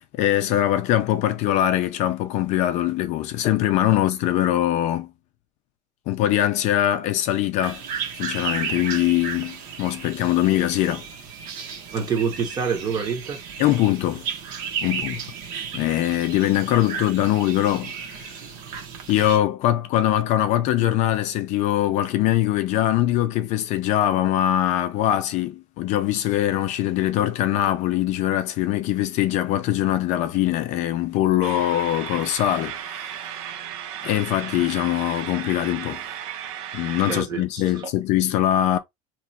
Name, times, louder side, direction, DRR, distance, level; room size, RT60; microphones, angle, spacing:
voice 1, 0.1-5.1 6.1-7.8 8.2-11.1 13.6-14.3 14.8-15.2 15.7-18.4 19.1-33.2 34.0-36.0 36.7-38.8, left 13 dB, 45° left, 0.4 m, -22 dB
sound 1, 7.6-19.4, right 6 dB, 55° right, 0.9 m, -34 dB
voice 2, 11.9-13.4 15.0-15.1 37.1-37.4 37.7-37.9, right 6 dB, 25° right, 0.8 m, -26 dB
sound 2, 31.4-37.2, right 10 dB, 85° right, 0.7 m, -35 dB
2.9 x 2.3 x 4.1 m
cardioid pair, 175°, 17 cm